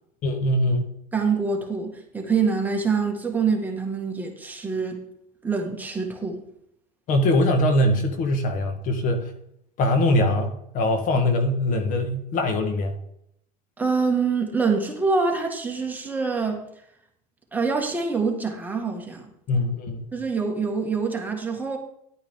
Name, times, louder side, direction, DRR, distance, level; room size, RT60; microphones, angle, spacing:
voice 1, 0.2-0.9 7.1-9.3 9.8-12.9 19.5-20.1, left 1 dB, 45° left, 6 dB, 1.6 m, -22 dB
voice 2, 1.1-5.0 5.4-6.4 13.8-16.6 17.5-19.3 20.1-21.8, right 4 dB, 10° right, 1 dB, 2.0 m, -25 dB
11.5 x 8.9 x 3.8 m, 0.73 s
supercardioid pair, 120°, 19 cm